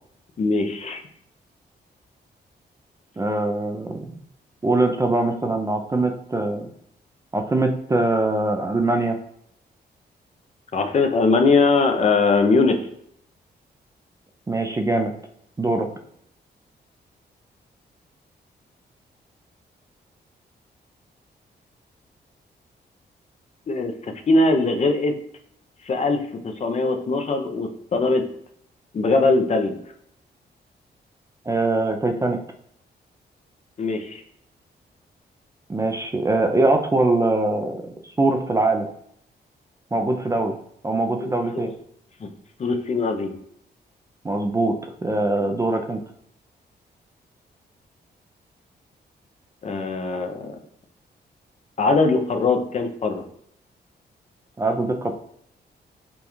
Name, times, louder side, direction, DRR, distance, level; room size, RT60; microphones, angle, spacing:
voice 1, 0.4-1.0 10.7-12.8 23.7-25.1 25.9-26.2 26.4-28.2 28.9-29.8 33.8-34.2 41.2-41.7 42.2-42.3 42.6-43.4 49.6-50.6 51.8-53.2, left 3 dB, 40° left, 6 dB, 0.5 m, -21 dB
voice 2, 3.2-4.1 4.6-6.7 7.3-9.2 14.5-15.1 15.6-15.9 31.5-32.4 35.7-38.9 39.9-40.6 40.8-41.7 44.2-46.0 54.6-55.1, right 2 dB, 20° right, 4 dB, 0.3 m, -22 dB
5.2 x 2.3 x 3.0 m, 0.69 s
wide cardioid pair, 125°, 18 cm